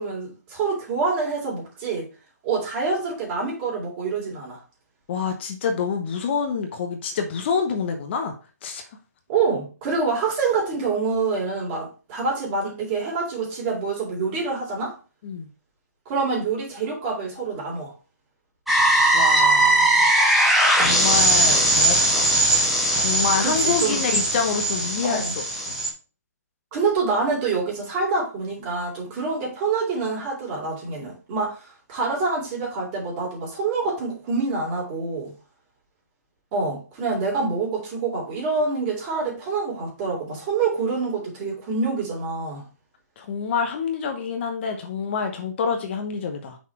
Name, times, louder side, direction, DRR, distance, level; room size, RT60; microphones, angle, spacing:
voice 1, 0.0-2.1 2.4-4.6 9.3-14.9 16.0-17.9 23.4-24.0 25.0-25.3 26.7-35.3 36.5-42.6, right 4 dB, 30° right, -2 dB, 3.3 m, -26 dB
voice 2, 5.1-8.3 8.6-8.9 15.2-15.5 19.1-20.3 20.7-22.3 22.9-25.3 25.5-25.8 43.2-46.6, left 6 dB, 40° left, 5 dB, 1.0 m, -27 dB
sound 1, 18.7-25.9, right 1 dB, ahead, 1.6 m, -19 dB
6.1 x 4.2 x 4.6 m, 0.34 s
hypercardioid pair, 145°, 9 cm